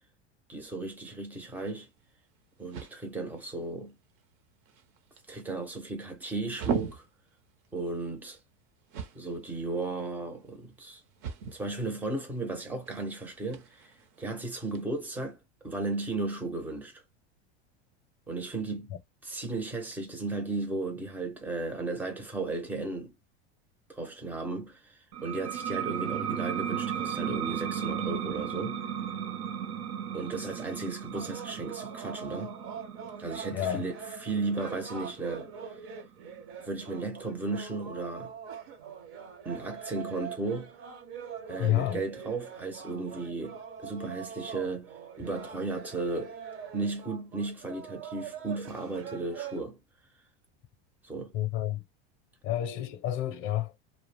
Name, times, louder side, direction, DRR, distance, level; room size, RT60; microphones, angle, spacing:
voice 1, 0.5-1.9 2.6-3.9 5.3-7.0 7.7-8.4 9.1-11.0 11.5-15.4 15.6-17.0 18.3-18.9 19.2-23.1 23.9-28.8 30.1-32.6 33.2-35.5 36.6-38.3 39.4-40.7 41.5-46.4 46.7-49.8 51.0-51.3, right 3 dB, 5° right, 0.5 m, -35 dB
sound 1, 1.4-14.8, right 6 dB, 50° right, 0.6 m, -42 dB
sound 2, 25.1-36.4, right 9 dB, 90° right, 0.6 m, -36 dB
sound 3, 31.1-49.6, right 7 dB, 70° right, 1.0 m, -43 dB
voice 2, 33.5-33.8 41.6-42.0 51.3-51.8 52.4-53.7, left 13 dB, 40° left, 0.5 m, -29 dB
2.3 x 2.0 x 3.2 m
supercardioid pair, 150°, 31 cm